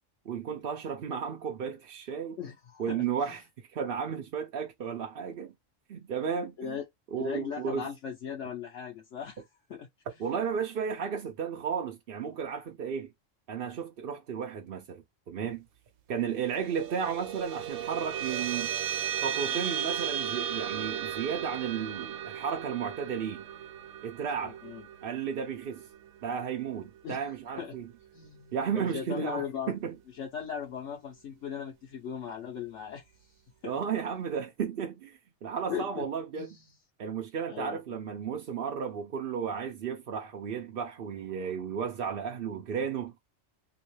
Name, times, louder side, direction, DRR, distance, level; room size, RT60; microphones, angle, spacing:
voice 1, 0.3-2.4 2.8-3.4 3.7-5.5 5.9-6.7 7.1-7.9 10.2-13.1 13.5-15.6 16.1-18.7 19.2-23.4 24.0-24.6 25.0-25.8 26.2-27.8 28.5-29.9 33.6-36.5 37.0-43.1, right 7 dB, 55° right, 0.7 m, -33 dB
voice 2, 2.4-3.4 6.6-6.8 7.2-9.4 9.7-10.2 24.4-24.9 27.0-27.2 27.6-27.7 28.1-29.7 30.1-33.0 33.6-33.8 35.7-36.1 36.4-36.7 37.5-37.8, left 8 dB, 70° left, 1.1 m, -38 dB
sound 1, 16.4-27.2, right 9 dB, 90° right, 1.0 m, -36 dB
3.1 x 2.9 x 3.1 m
omnidirectional pair, 1.3 m